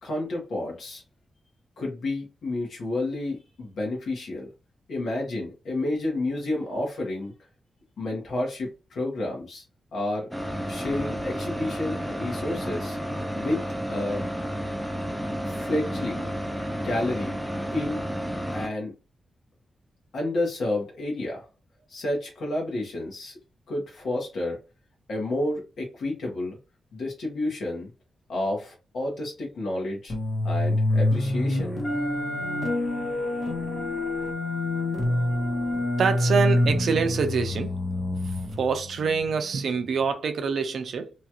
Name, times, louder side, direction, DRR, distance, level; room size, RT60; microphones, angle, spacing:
voice 1, 0.0-1.0 1.8-4.5 4.9-7.3 8.0-9.6 9.9-13.0 13.4-13.6 13.9-14.3 15.4-16.3 16.8-17.4 17.7-18.1 18.5-18.9 20.1-21.4 21.9-23.4 23.7-24.6 25.1-26.6 26.9-27.9 28.3-30.1 30.4-31.8, left 2 dB, 80° left, 1.2 m, -30 dB
sound 1, 10.3-18.7, equal, 5° left, 0.5 m, -31 dB
sound 2, 30.1-40.0, left 1 dB, 55° left, 1.0 m, -27 dB
Wind instrument woodwind instrument, 31.8-37.1, equal, 35° left, 0.6 m, -37 dB
voice 2, 36.0-37.8 38.1-41.1, right 5 dB, 75° right, 0.4 m, -26 dB
3.0 x 2.4 x 2.9 m
wide cardioid pair, 115°, 0 cm